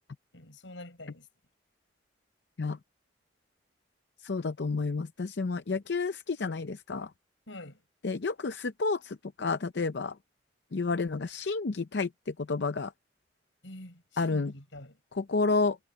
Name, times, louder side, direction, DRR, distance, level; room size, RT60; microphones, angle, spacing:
voice 1, 0.3-1.3 7.5-7.8 13.6-15.0, left 1 dB, 80° left, 6.2 m, -46 dB
voice 2, 4.2-7.1 8.0-10.1 10.7-12.9 14.2-14.5 15.1-15.8, left 4 dB, 60° left, 0.6 m, -30 dB
head